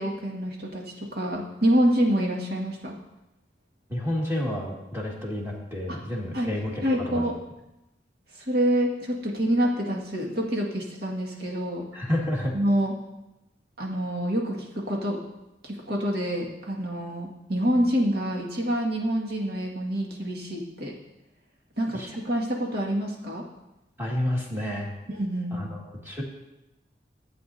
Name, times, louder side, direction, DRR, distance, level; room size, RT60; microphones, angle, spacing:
voice 1, 0.0-3.0 5.9-6.0 6.3-6.5 6.8-7.3 8.5-11.9 12.5-12.9 13.8-15.2 15.6-20.9 21.8-23.5 25.1-25.7, equal, 60° right, -2 dB, 1.9 m, -27 dB
voice 2, 3.9-7.2 11.9-12.5 21.9-22.2 24.0-24.9 25.5-26.2, left 1 dB, 15° right, -3 dB, 1.8 m, -30 dB
15.0 x 8.5 x 2.7 m, 0.97 s
head